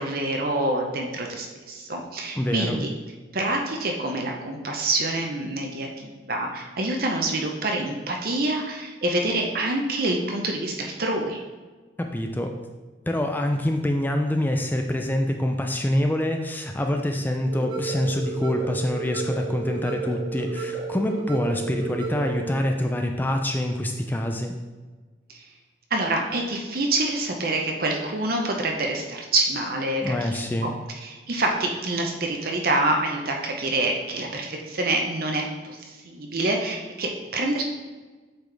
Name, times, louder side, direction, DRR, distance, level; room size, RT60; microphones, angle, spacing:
voice 1, 0.0-2.9 3.3-11.4 25.3-25.5 25.9-30.7 31.0-37.6, right 2 dB, 55° right, 2 dB, 0.8 m, -26 dB
voice 2, 2.4-2.9 12.0-12.5 13.1-24.5 30.0-30.7, left 1 dB, 10° left, 4 dB, 0.4 m, -25 dB
sound 1, 17.5-22.5, right 4 dB, 25° right, 1.5 m, -32 dB
8.0 x 4.1 x 3.3 m, 1.3 s
head